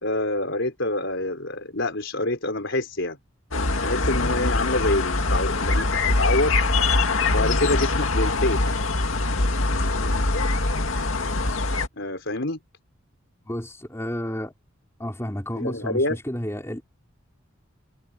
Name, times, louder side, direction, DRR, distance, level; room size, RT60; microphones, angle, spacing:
voice 1, 0.0-3.2 3.8-6.6 7.3-8.7 12.0-12.6 15.5-16.2, left 2 dB, 60° left, 4.9 m, -26 dB
sound 1, 3.5-11.9, left 2 dB, 80° left, 2.2 m, -23 dB
voice 2, 13.5-14.5 15.0-16.8, equal, 15° left, 3.8 m, -31 dB
head